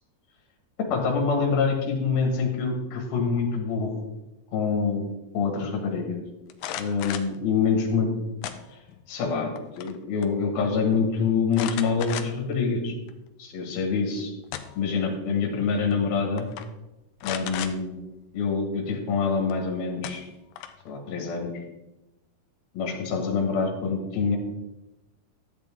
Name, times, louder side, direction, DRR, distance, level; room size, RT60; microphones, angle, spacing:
voice 1, 0.9-4.0 4.5-5.1 5.3-6.2 6.8-8.1 9.1-9.5 9.8-12.9 13.4-14.3 14.8-16.5 17.2-17.9 18.3-20.2 20.9-21.5 22.7-24.4, left 5 dB, 70° left, 1 dB, 3.3 m, -26 dB
sound 1, 6.5-7.4 8.4-9.0 9.4-10.0 10.2-10.3 11.5-12.5 13.1-13.2 14.2-14.9 15.9-16.1 16.4-16.7 17.2-17.7 19.5-19.6 20.0-20.9, left 10 dB, 85° left, 2.0 m, -35 dB
12.0 x 7.9 x 3.7 m, 0.97 s
omnidirectional pair, 4.6 m